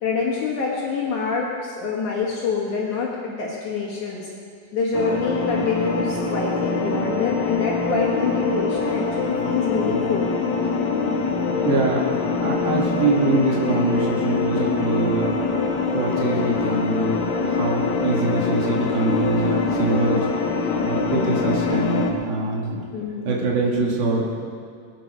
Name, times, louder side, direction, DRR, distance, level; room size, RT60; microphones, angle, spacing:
voice 1, 0.0-4.3 4.7-10.3 22.9-23.3, left 5 dB, 60° left, -3 dB, 2.5 m, -26 dB
sound 1, 4.9-22.1, left 4 dB, 75° left, 1.6 m, -24 dB
voice 2, 11.7-12.1 12.4-15.3 15.9-20.2 20.9-22.8 23.3-24.5, right 2 dB, 90° right, -2 dB, 4.4 m, -24 dB
21.5 x 9.2 x 5.1 m, 2.2 s
omnidirectional pair, 4.8 m